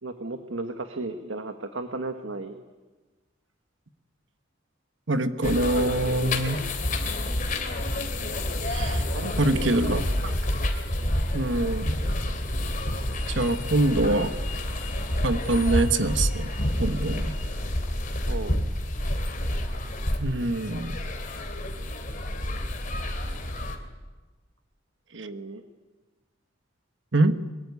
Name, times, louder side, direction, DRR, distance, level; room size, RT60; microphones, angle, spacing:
voice 1, 0.0-2.6 9.1-10.1 14.0-14.3 18.3-18.7 25.1-25.6, right 2 dB, 85° right, 7 dB, 1.6 m, -35 dB
voice 2, 5.1-6.6 8.7-9.0 9.4-10.3 11.3-12.0 13.3-14.3 15.2-16.5 16.8-17.4 20.2-20.9 25.1-25.3 27.1-27.4, right 2 dB, 65° right, 10 dB, 1.4 m, -25 dB
sound 1, 5.4-23.8, left 1 dB, 45° left, 3.0 m, -29 dB
23.0 x 22.5 x 9.7 m, 1.2 s
head